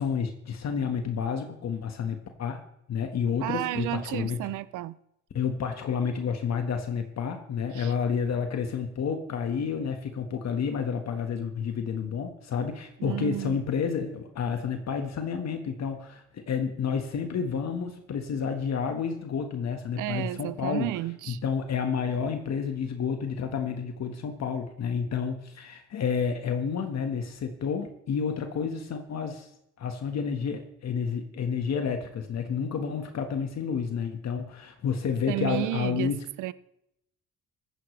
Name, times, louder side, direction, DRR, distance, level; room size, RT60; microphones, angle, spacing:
voice 1, 0.0-2.6 2.9-4.4 5.3-20.9 21.3-29.5 29.8-36.2, left 6 dB, 60° left, 1.6 m, -30 dB
voice 2, 3.4-4.9 7.7-7.9 13.0-13.6 20.0-21.4 35.3-36.1 36.4-36.5, right 16 dB, 85° right, 0.6 m, -32 dB
15.0 x 14.0 x 3.3 m
cardioid pair, 90°, 30 cm